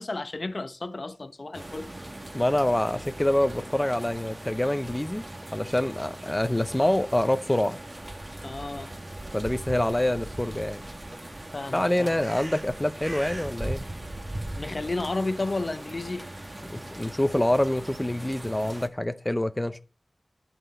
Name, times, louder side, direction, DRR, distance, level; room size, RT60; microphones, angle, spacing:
voice 1, 0.0-1.9 8.4-8.9 11.5-12.2 14.6-16.3, left 2 dB, 50° left, 0.8 m, -32 dB
sound 1, 1.5-18.9, right 1 dB, 25° right, 1.4 m, -39 dB
voice 2, 2.3-5.2 5.5-7.8 9.3-10.8 11.7-13.8 16.6-19.8, left 1 dB, 15° left, 0.7 m, -26 dB
11.0 x 4.5 x 7.7 m
wide cardioid pair, 70°, 0 cm